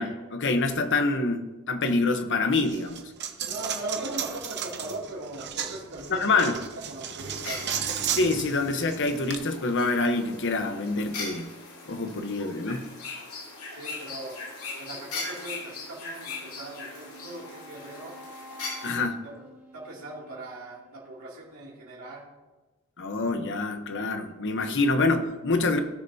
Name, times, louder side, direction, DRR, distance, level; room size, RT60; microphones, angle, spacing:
voice 1, 0.0-3.0 6.1-6.6 8.2-11.5 11.9-12.9 18.8-19.2 23.0-25.8, left 3 dB, 55° left, 7 dB, 1.0 m, -26 dB
Coin (dropping), 2.7-9.4, right 8 dB, 50° right, 0.9 m, -34 dB
voice 2, 3.4-7.8 13.7-14.4 14.8-18.2 19.2-19.4 19.7-22.2, right 2 dB, 80° right, -6 dB, 2.6 m, -39 dB
sound 1, 7.3-19.0, left 3 dB, 80° left, 2.7 m, -40 dB
Wind instrument woodwind instrument, 16.2-21.1, equal, 10° right, 1.7 m, -50 dB
17.5 x 6.6 x 2.8 m, 1.2 s
head